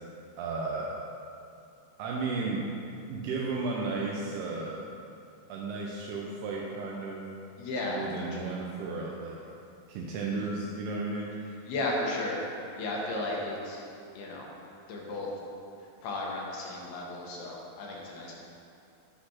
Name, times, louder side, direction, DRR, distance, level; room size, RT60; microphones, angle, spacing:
voice 1, 0.4-0.9 2.0-2.7 3.1-4.8 5.5-7.2 7.9-9.4 9.9-11.3, right 3 dB, 80° right, -3 dB, 2.5 m, -34 dB
voice 2, 7.6-8.6 10.4-10.5 11.7-12.4 12.8-13.8 14.2-14.5 14.9-15.3 16.0-18.3, left 2 dB, 75° left, -2 dB, 3.0 m, -34 dB
10.5 x 4.1 x 5.7 m, 2.5 s
omnidirectional pair, 4.8 m